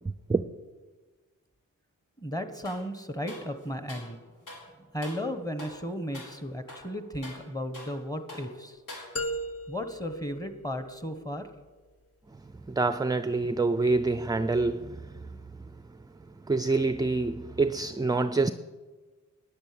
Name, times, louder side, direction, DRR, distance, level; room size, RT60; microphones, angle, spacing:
voice 1, 2.2-4.2 4.8-8.8 9.7-11.5, equal, 10° left, 1.3 m, -35 dB
sound 1, 2.6-2.9 3.3-4.1 4.5-4.7 5.0-5.3 5.6-5.8 6.1-6.4 6.7-8.0 8.3-8.5 8.9-9.4, left 2 dB, 70° left, 3.9 m, -45 dB
sound 2, 9.2-11.2, equal, 45° left, 1.1 m, -37 dB
voice 2, 12.7-15.0 16.5-18.5, right 3 dB, 10° right, 0.4 m, -26 dB
10.5 x 9.8 x 8.6 m
wide cardioid pair, 100°, 33 cm